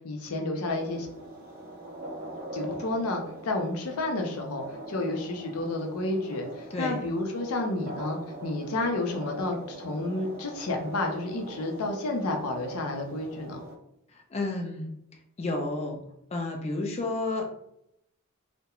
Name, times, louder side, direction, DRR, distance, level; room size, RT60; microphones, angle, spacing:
voice 1, 0.0-1.1 2.5-13.6, left 2 dB, 85° left, 3 dB, 0.5 m, -31 dB
sound 1, 0.7-13.8, right 1 dB, 40° right, 0.4 m, -42 dB
voice 2, 14.3-14.9 15.4-16.0 16.3-17.5, left 2 dB, 30° left, 2 dB, 0.4 m, -31 dB
2.3 x 2.1 x 2.9 m, 0.77 s
head